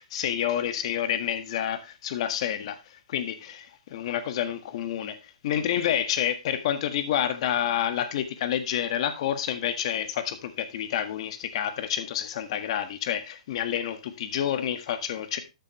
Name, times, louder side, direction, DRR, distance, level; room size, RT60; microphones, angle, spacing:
voice 1, 0.0-5.2 5.4-15.4, left 10 dB, 55° left, 1.6 m, -29 dB
12.5 x 6.7 x 3.1 m
hypercardioid pair, 135°, 4 cm